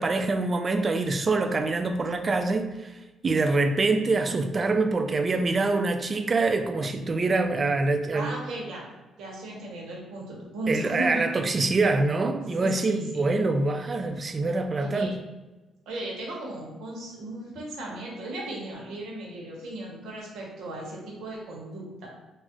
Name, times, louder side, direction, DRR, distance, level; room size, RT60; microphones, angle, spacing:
voice 1, 0.0-8.3 10.7-15.1, right 3 dB, 35° right, 6 dB, 0.3 m, -25 dB
voice 2, 8.1-8.8 9.2-11.2 12.6-13.3 14.8-15.1 15.9-22.1, right 1 dB, 85° right, -2 dB, 0.9 m, -36 dB
2.4 x 2.0 x 3.8 m, 1.1 s
cardioid pair, 90°, 0 cm